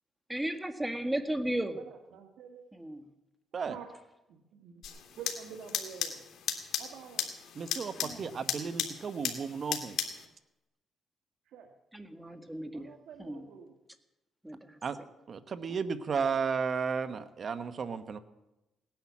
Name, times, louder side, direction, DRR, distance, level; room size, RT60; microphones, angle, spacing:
voice 1, 0.3-1.8 2.7-3.0 8.0-8.3 11.9-12.9 13.2-13.4 14.4-14.8, right 1 dB, 10° right, 8 dB, 1.6 m, -35 dB
voice 2, 1.6-2.7 3.7-3.9 4.3-4.8 5.2-6.2 6.8-7.3 11.5-11.7 12.7-13.7, right 7 dB, 80° right, 4 dB, 1.5 m, -47 dB
sound 1, 4.8-10.2, left 8 dB, 70° left, 2.1 m, -36 dB
voice 3, 7.5-10.0 14.8-15.0 15.3-18.2, right 5 dB, 50° right, 11 dB, 1.1 m, -33 dB
17.5 x 10.5 x 7.3 m, 0.96 s
cardioid pair, 90°, 0 cm